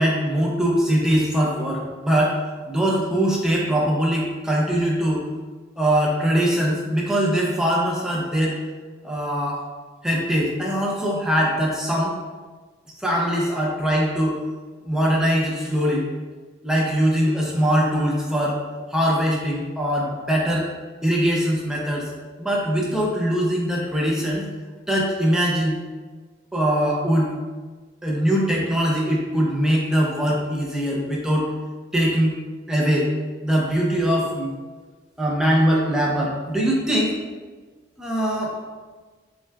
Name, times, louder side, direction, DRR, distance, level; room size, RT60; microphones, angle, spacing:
voice 1, 0.0-2.4 2.7-5.2 5.8-8.6 9.0-9.6 10.0-12.2 13.0-14.4 14.8-16.1 16.6-18.6 18.9-20.7 21.0-22.1 22.4-24.5 24.9-25.8 26.5-27.3 28.0-31.5 31.9-32.4 32.7-33.1 33.4-34.5 35.2-37.1 38.0-38.5, equal, 5° right, -4 dB, 0.5 m, -22 dB
5.6 x 2.2 x 2.2 m, 1.4 s
head